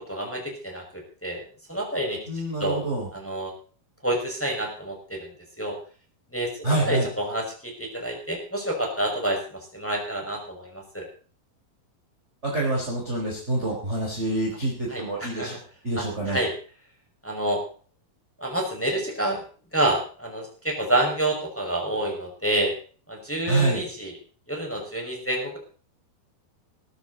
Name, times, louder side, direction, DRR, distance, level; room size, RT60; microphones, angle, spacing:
voice 1, 0.1-1.4 1.7-2.2 2.6-2.8 3.1-3.5 4.0-5.3 5.6-5.8 6.3-11.1 14.9-15.6 16.0-16.5 17.2-17.6 18.4-19.4 19.7-22.7 23.1-24.1 24.5-25.6, right 1 dB, 5° left, 0 dB, 5.5 m, -28 dB
voice 2, 2.3-3.1 6.6-7.1 12.4-15.5 15.8-16.4 23.5-23.8, right 2 dB, 15° right, -2 dB, 4.1 m, -26 dB
18.5 x 13.5 x 4.2 m, 0.40 s
omnidirectional pair, 4.6 m